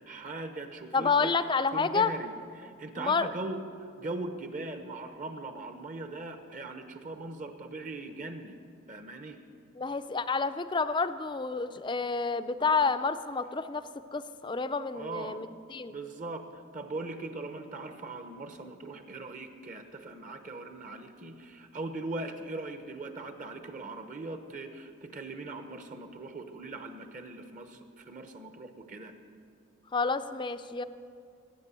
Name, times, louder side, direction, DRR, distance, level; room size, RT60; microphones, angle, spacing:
voice 1, 0.1-1.3 1.7-8.6 8.9-9.4 14.9-15.4 15.9-29.1, right 2 dB, 40° right, 7 dB, 0.9 m, -40 dB
voice 2, 0.9-2.1 3.0-3.3 9.8-13.8 14.1-15.5 15.7-15.9 29.9-30.8, left 4 dB, 25° left, 11 dB, 0.4 m, -29 dB
19.0 x 8.5 x 8.2 m, 2.4 s
head